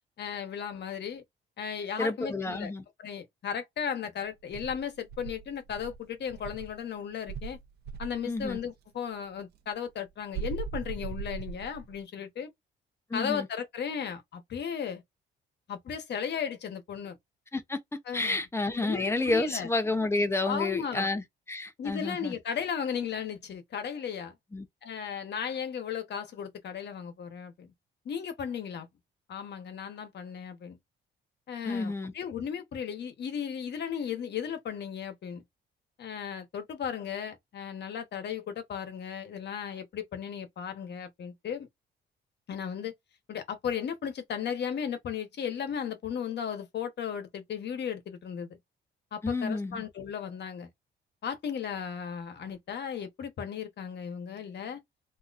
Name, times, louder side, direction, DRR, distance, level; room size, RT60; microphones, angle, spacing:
voice 1, 0.2-1.2 1.6-2.7 3.0-7.6 8.0-12.5 13.1-15.0 15.7-17.2 18.1-18.4 18.8-19.7 20.4-21.1 21.8-24.3 24.8-27.7 28.0-28.9 29.3-30.8 31.5-35.4 36.0-41.7 42.5-42.9 43.3-48.6 49.1-50.7 51.2-54.8, left 7 dB, 60° left, 1.1 m, -35 dB
voice 2, 2.0-2.8 8.2-8.6 13.1-13.5 17.5-17.8 18.1-22.3 24.5-24.7 31.6-32.1 49.2-49.8, left 2 dB, 15° left, 0.8 m, -30 dB
Insect, 4.5-6.8 7.3-8.7 10.3-12.0, right 6 dB, 55° right, 0.7 m, -39 dB
3.7 x 2.8 x 2.5 m
cardioid pair, 90°, 20 cm